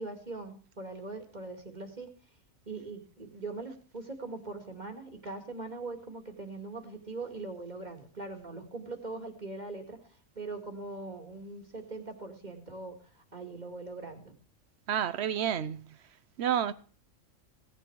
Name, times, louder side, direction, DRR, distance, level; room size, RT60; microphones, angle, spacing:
voice 1, 0.0-2.1 2.7-10.0 10.4-14.3, right 3 dB, 30° right, 2.4 m, -41 dB
voice 2, 14.9-16.0 16.4-16.7, right 9 dB, 60° right, 1.0 m, -30 dB
17.0 x 9.9 x 4.7 m
omnidirectional pair, 1.4 m